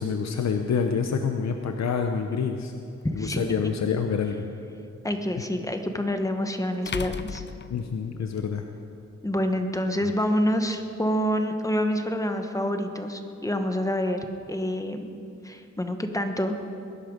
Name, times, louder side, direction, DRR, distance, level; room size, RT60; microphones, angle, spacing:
voice 1, 0.0-2.7 3.2-4.5 7.7-8.7 10.0-10.1, left 6 dB, 65° left, 5 dB, 0.8 m, -27 dB
sound 1, 3.0-3.1 5.7-5.8 6.9-8.5, left 6 dB, 40° left, 0.5 m, -35 dB
voice 2, 3.0-3.7 5.0-7.4 9.2-15.1 15.4-16.6, equal, 10° left, 6 dB, 1.1 m, -27 dB
20.0 x 11.0 x 5.2 m, 2.6 s
wide cardioid pair, 110°, 29 cm